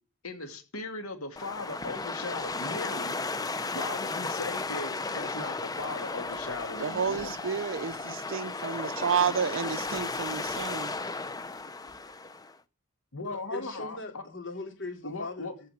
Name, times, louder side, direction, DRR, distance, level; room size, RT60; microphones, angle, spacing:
voice 1, 0.2-3.2 3.7-7.4 13.1-14.2 15.0-15.5, left 3 dB, 90° left, 2.4 m, -38 dB
sound 1, 1.4-12.5, left 3 dB, 15° left, 0.6 m, -35 dB
voice 2, 6.8-11.0, right 6 dB, 60° right, 0.5 m, -30 dB
voice 3, 13.2-15.7, left 2 dB, 55° left, 3.8 m, -40 dB
14.5 x 5.6 x 7.3 m
head